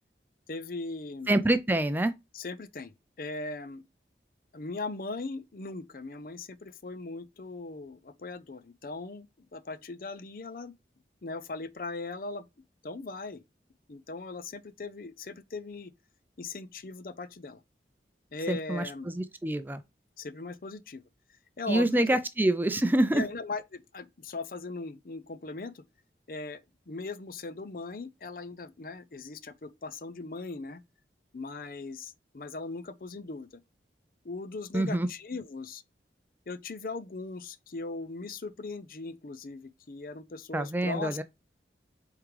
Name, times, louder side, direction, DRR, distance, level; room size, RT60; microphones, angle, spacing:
voice 1, 0.5-1.3 2.3-2.9 3.2-3.8 4.5-10.7 11.2-12.5 12.8-13.4 13.9-15.9 16.4-17.6 18.3-19.1 20.2-21.0 21.6-22.0 23.1-25.8 26.3-26.6 26.9-30.8 31.3-33.5 34.2-35.8 36.5-41.2, left 3 dB, 50° left, 0.5 m, -39 dB
voice 2, 1.3-2.1 18.5-19.8 21.7-23.2 34.7-35.1 40.5-41.2, right 1 dB, 10° right, 0.4 m, -26 dB
8.0 x 3.7 x 3.2 m
head